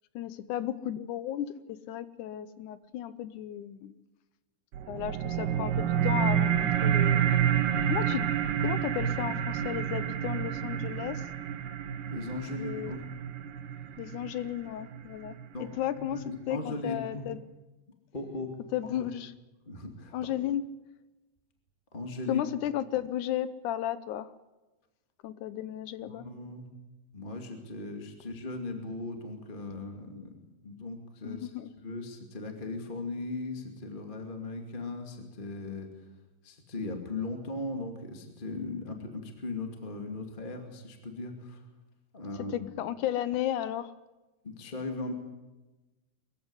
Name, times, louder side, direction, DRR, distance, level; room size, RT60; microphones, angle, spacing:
voice 1, 0.2-3.9 4.9-7.2 7.9-8.3 8.6-11.2 12.6-12.9 14.0-15.4 15.8-16.2 16.5-17.4 18.7-19.3 20.1-20.6 22.3-24.3 25.2-26.3 31.2-31.7 42.5-43.9, left 11 dB, 75° left, 14 dB, 1.9 m, -34 dB
sound 1, 4.7-15.7, right 9 dB, 70° right, 2.7 m, -29 dB
voice 2, 12.1-13.0 15.5-15.7 16.0-17.3 18.1-18.5 18.8-19.0 19.6-20.1 21.9-22.4 26.0-26.7 27.1-30.3 30.6-31.5 31.8-35.9 36.4-41.6 42.1-42.6 44.4-45.1, left 2 dB, 15° left, 4 dB, 1.9 m, -38 dB
22.5 x 15.5 x 9.7 m, 1.1 s
omnidirectional pair, 4.3 m